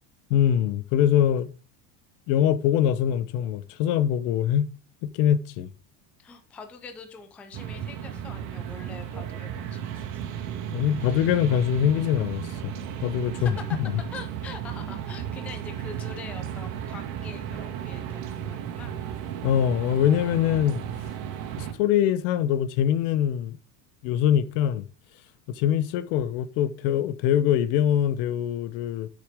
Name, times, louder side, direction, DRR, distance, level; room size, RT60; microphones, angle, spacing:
voice 1, 0.3-1.5 2.3-4.7 5.0-5.7 10.7-12.7 13.0-13.5 19.4-20.8 21.6-23.6 24.0-24.9 25.5-29.1, left 10 dB, 70° left, 0.9 m, -23 dB
voice 2, 6.2-10.2 13.3-13.8 14.1-19.0, left 4 dB, 5° left, 0.3 m, -44 dB
sound 1, 7.5-21.7, right 9 dB, 90° right, 2.1 m, -34 dB
10.0 x 6.6 x 3.5 m
cardioid pair, 160°, 47 cm